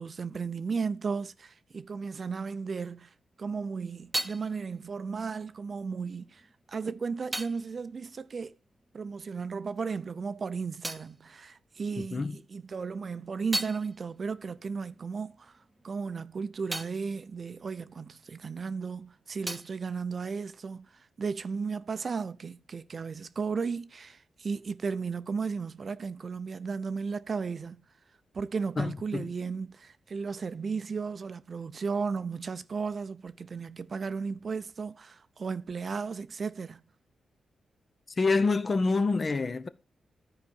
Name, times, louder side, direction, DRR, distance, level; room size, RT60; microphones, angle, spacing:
voice 1, 0.0-8.6 8.9-27.8 28.3-36.8, right 5 dB, 45° right, 0.5 m, -35 dB
sound 1, 3.3-9.3 9.6-12.3 12.7-18.7 19.0-21.0, right 1 dB, 10° right, 0.8 m, -41 dB
voice 2, 28.8-29.2 38.2-39.7, left 3 dB, 35° left, 0.6 m, -26 dB
13.0 x 4.8 x 4.3 m
cardioid pair, 95°, 0 cm